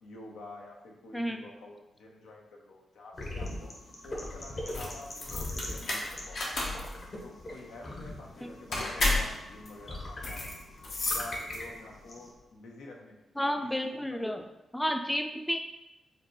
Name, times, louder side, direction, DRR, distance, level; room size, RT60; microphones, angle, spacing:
voice 1, 0.0-3.8 4.0-6.8 7.2-10.4 11.0-14.5, left 2 dB, 90° left, 0 dB, 0.6 m, -48 dB
voice 2, 1.1-1.4 8.4-8.5 13.4-14.4 14.7-15.6, equal, 5° left, 5 dB, 0.4 m, -31 dB
sound 1, 3.1-12.3, left 1 dB, 55° left, 1.1 m, -41 dB
sound 2, 4.6-11.9, left 2 dB, 70° left, 0.9 m, -33 dB
5.0 x 2.2 x 3.1 m, 0.95 s
cardioid pair, 55°, 0 cm